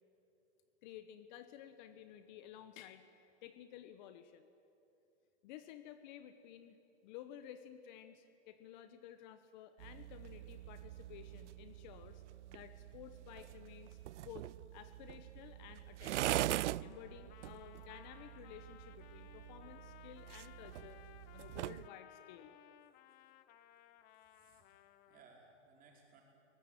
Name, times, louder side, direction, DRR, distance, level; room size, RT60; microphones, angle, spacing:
voice 1, 0.8-3.1 3.4-4.5 5.4-12.2 12.5-16.5 16.8-21.0 21.3-22.6, left 10 dB, 40° left, 10 dB, 1.1 m, -54 dB
sound 1, 9.8-21.9, right 15 dB, 80° right, 0.5 m, -43 dB
Trumpet, 16.7-25.3, left 12 dB, 25° left, 0.8 m, -61 dB
voice 2, 24.1-24.8 25.1-26.2, right 4 dB, 25° right, -1 dB, 5.1 m, -64 dB
23.0 x 19.5 x 9.1 m, 2.8 s
hypercardioid pair, 145°, 35 cm